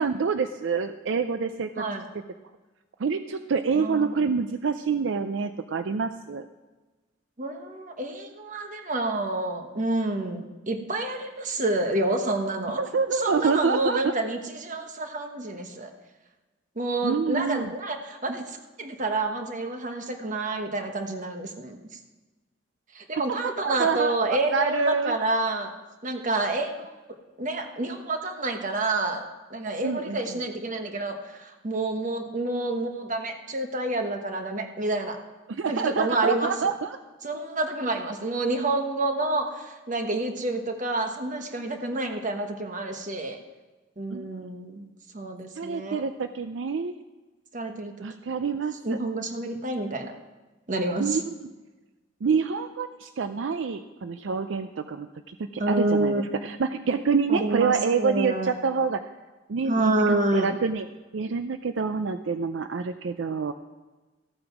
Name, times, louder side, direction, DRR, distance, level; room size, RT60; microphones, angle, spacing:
voice 1, 0.0-1.8 3.0-6.5 12.8-14.1 17.0-17.7 23.6-25.2 29.8-30.2 35.5-37.0 44.1-44.3 45.6-47.0 48.0-49.0 51.0-51.3 52.2-59.0 59.5-60.9 61.1-63.5, right 5 dB, 70° right, 9 dB, 0.5 m, -27 dB
voice 2, 3.7-4.3 7.4-12.8 13.1-15.9 16.7-21.8 22.9-25.7 26.0-26.9 27.4-29.2 29.5-35.2 35.7-36.7 37.2-43.4 44.0-44.9 45.1-46.1 47.5-47.9 48.8-50.1 50.7-51.2 55.6-56.3 57.3-58.5 59.7-60.6, right 2 dB, 40° right, 5 dB, 1.2 m, -28 dB
14.5 x 8.7 x 5.9 m, 1.2 s
head